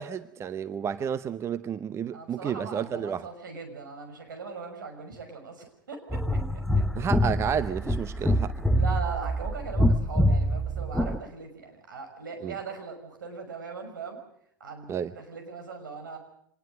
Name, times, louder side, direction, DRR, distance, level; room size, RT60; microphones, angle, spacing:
voice 1, 0.0-3.3 6.9-8.5 12.4-12.5 14.9-15.1, right 8 dB, 25° right, 14 dB, 0.8 m, -31 dB
voice 2, 2.1-6.4 6.7-7.1 8.7-14.2 14.6-16.2, right 5 dB, 70° right, 5 dB, 5.8 m, -40 dB
sound 1, 6.1-11.2, equal, ahead, 1.0 m, -25 dB
25.5 x 20.0 x 6.5 m, 0.71 s
figure-of-eight pair, 85°, 11 cm